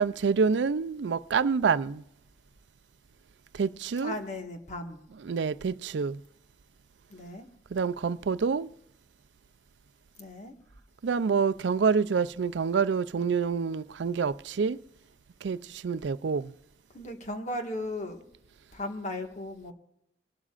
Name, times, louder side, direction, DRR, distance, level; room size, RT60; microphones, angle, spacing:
voice 1, 0.0-2.0 3.5-4.2 5.2-6.2 7.7-8.7 11.0-14.8 15.4-16.5, right 5 dB, 80° right, 0.4 m, -27 dB
voice 2, 4.0-5.0 7.1-7.5 10.2-10.6 16.9-18.3 18.7-19.7, left 1 dB, 40° left, 1.7 m, -36 dB
23.5 x 12.0 x 2.5 m
head